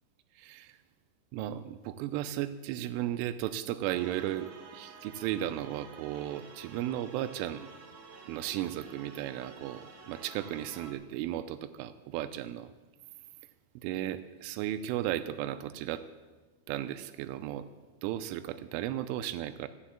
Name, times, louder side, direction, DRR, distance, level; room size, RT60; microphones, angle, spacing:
voice 1, 0.4-0.8 1.3-7.7 8.3-12.7 13.8-16.0 16.7-17.7 18.0-19.7, right 12 dB, 90° right, 10 dB, 3.1 m, -35 dB
sound 1, 3.9-10.9, right 5 dB, 60° right, 2.1 m, -51 dB
14.0 x 7.3 x 8.6 m, 1.3 s
omnidirectional pair, 5.5 m